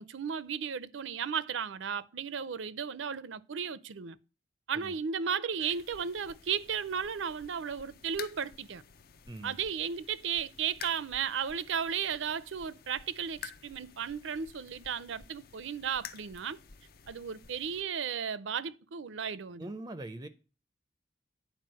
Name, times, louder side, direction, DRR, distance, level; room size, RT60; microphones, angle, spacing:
voice 1, 0.0-4.2 4.7-8.8 9.4-16.6 17.1-19.7, right 7 dB, 75° right, 0.6 m, -35 dB
sound 1, 5.6-17.8, left 7 dB, 50° left, 0.6 m, -51 dB
voice 2, 9.3-9.6 19.6-20.3, right 2 dB, 20° right, 0.5 m, -42 dB
9.5 x 4.7 x 7.6 m
head